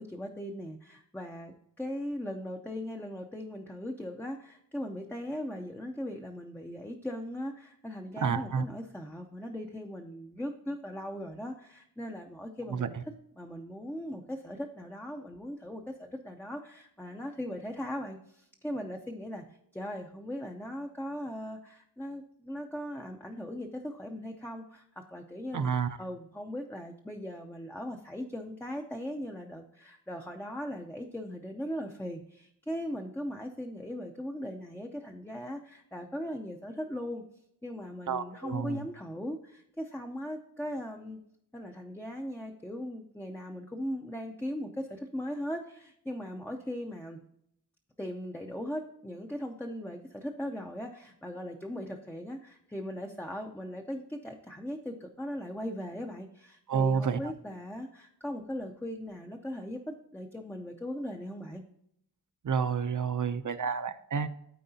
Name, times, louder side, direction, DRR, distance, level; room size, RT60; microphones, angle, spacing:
voice 1, 0.0-19.4 19.7-37.2 37.6-41.2 41.5-47.2 48.0-61.6, equal, 5° left, 2 dB, 0.5 m, -39 dB
voice 2, 8.2-8.6 12.7-13.0 25.5-26.0 38.1-38.8 56.7-57.2 62.4-64.3, right 6 dB, 45° right, 11 dB, 0.6 m, -29 dB
12.5 x 4.7 x 2.7 m, 0.74 s
wide cardioid pair, 145°, 42 cm